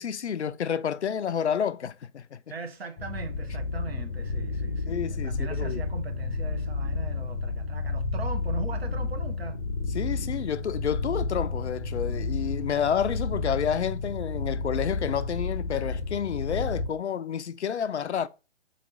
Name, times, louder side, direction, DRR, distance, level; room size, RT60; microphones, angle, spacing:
voice 1, 0.0-2.4 4.9-5.8 9.9-18.3, left 8 dB, 65° left, 0.5 m, -30 dB
voice 2, 2.5-9.6, right 4 dB, 55° right, 1.0 m, -40 dB
sound 1, 3.0-16.9, left 3 dB, 25° left, 0.6 m, -31 dB
4.1 x 3.1 x 4.1 m
figure-of-eight pair, 135°, 36 cm